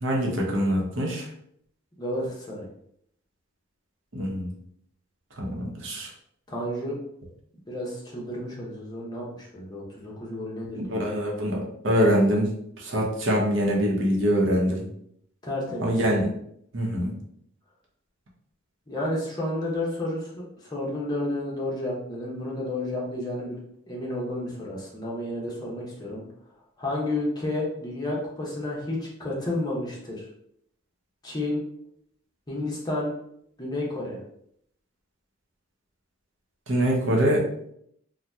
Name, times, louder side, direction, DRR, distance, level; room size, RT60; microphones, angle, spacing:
voice 1, 0.0-1.3 4.1-4.5 5.4-6.1 10.8-14.8 15.8-16.3 16.7-17.1 36.7-37.5, equal, 70° right, -2 dB, 0.8 m, -24 dB
voice 2, 2.0-2.7 6.5-7.0 7.7-11.2 15.4-16.0 18.9-23.6 23.9-26.2 26.8-30.3 31.2-31.6 32.5-33.1 33.6-34.2, left 1 dB, 20° left, -4 dB, 0.8 m, -31 dB
2.8 x 2.1 x 3.4 m, 0.70 s
head